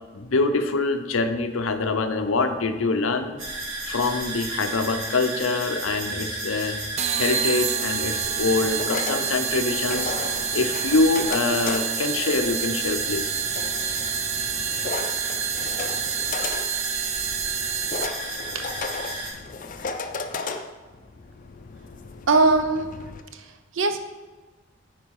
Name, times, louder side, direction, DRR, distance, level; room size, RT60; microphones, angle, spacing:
voice 1, 0.1-3.4 3.8-6.8 7.2-10.1 10.5-13.3, left 3 dB, 90° left, 8 dB, 0.7 m, -24 dB
sound 1, 3.4-19.3, right 2 dB, 90° right, 2.7 m, -33 dB
sound 2, 7.0-18.4, right 9 dB, 35° right, 0.3 m, -29 dB
sound 3, 8.2-23.2, left 4 dB, 40° left, 0.5 m, -35 dB
voice 2, 22.3-22.9 23.3-24.0, right 3 dB, 70° right, 7 dB, 0.7 m, -21 dB
9.3 x 4.6 x 4.7 m, 1.3 s
head